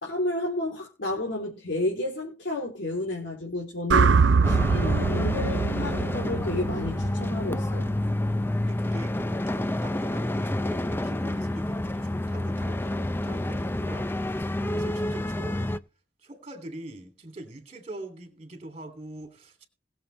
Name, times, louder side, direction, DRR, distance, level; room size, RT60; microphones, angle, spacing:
voice 1, 0.0-7.9, left 2 dB, 80° left, 3.4 m, -31 dB
sound 1, 3.9-8.1, right 5 dB, 80° right, 0.6 m, -24 dB
sound 2, 4.4-15.8, left 1 dB, 10° left, 0.5 m, -29 dB
voice 2, 8.6-12.9 13.2-15.8 16.2-19.7, right 1 dB, 35° right, 2.7 m, -43 dB
20.5 x 7.1 x 3.2 m
head